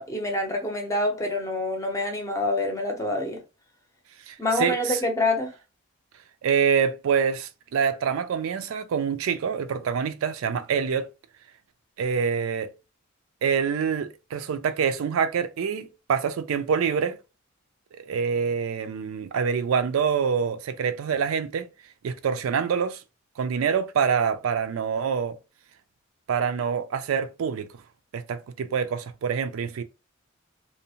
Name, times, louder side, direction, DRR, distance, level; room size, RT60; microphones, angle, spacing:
voice 1, 0.0-3.4 4.4-5.5, left 1 dB, 15° left, 0.6 m, -26 dB
voice 2, 4.3-5.0 6.4-11.1 12.0-12.7 13.4-17.2 18.0-21.7 22.0-23.0 23.4-25.4 26.3-27.8 28.1-29.8, right 6 dB, 85° right, 0.4 m, -26 dB
2.6 x 2.1 x 2.7 m
head